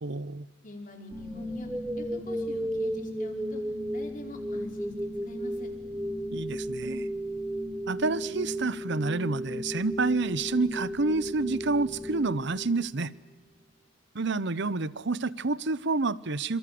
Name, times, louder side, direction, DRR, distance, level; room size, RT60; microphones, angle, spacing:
voice 1, 0.0-0.5 6.3-7.1 7.9-13.1 14.1-16.6, right 3 dB, 60° right, 19 dB, 0.9 m, -29 dB
voice 2, 0.6-1.7 1.9-3.6 3.9-4.9 5.2-5.7, left 1 dB, 40° left, 3 dB, 5.1 m, -44 dB
sound 1, 1.1-13.2, equal, 5° right, 1.1 m, -34 dB
27.5 x 26.5 x 7.8 m, 1.1 s
head